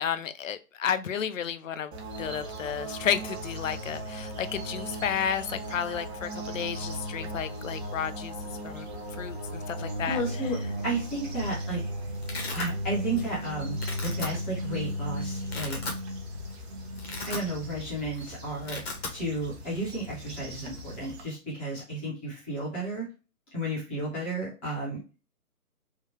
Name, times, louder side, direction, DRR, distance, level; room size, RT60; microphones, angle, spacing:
voice 1, 0.0-1.9 2.2-8.3 8.6-8.9 9.2-10.2, left 8 dB, 60° left, 0.5 m, -32 dB
sound 1, 1.9-21.2, equal, 45° right, 1.0 m, -36 dB
voice 2, 10.1-10.6 10.8-11.8 12.5-13.7 14.0-15.8 17.2-18.8 19.1-23.0 23.5-25.0, right 1 dB, 10° left, 0.6 m, -32 dB
Domestic sounds home sounds, 11.2-11.6 11.8-12.7 13.2-13.4 13.7-14.3 14.9-15.0 15.4-16.0 16.4-16.5 16.9-17.8 18.1-18.2 18.5-19.2, left 3 dB, 40° left, 1.0 m, -37 dB
3.7 x 2.2 x 2.8 m
figure-of-eight pair, 145°, 46 cm